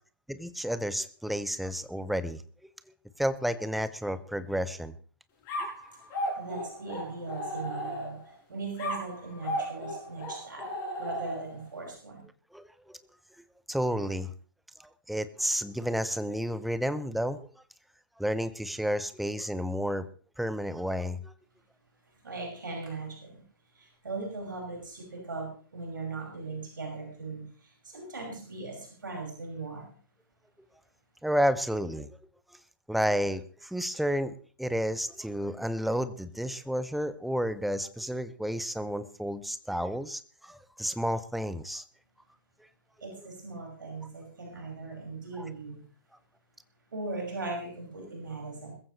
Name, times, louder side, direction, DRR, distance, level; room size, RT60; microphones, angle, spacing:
voice 1, 0.3-2.4 3.2-5.0 12.5-13.0 13.7-14.3 14.8-17.4 18.2-20.1 20.4-21.3 31.2-32.1 32.9-41.8 45.4-45.5, equal, ahead, 14 dB, 0.5 m, -31 dB
sound 1, 5.5-8.3 8.8-11.7, equal, 25° left, 6.3 m, -35 dB
voice 2, 6.1-10.7 11.0-12.2 22.2-23.4 23.7-29.9 43.0-45.8 46.9-48.7, right 3 dB, 60° right, 0 dB, 5.4 m, -39 dB
21.0 x 14.5 x 3.1 m, 0.42 s
figure-of-eight pair, 125°, 12 cm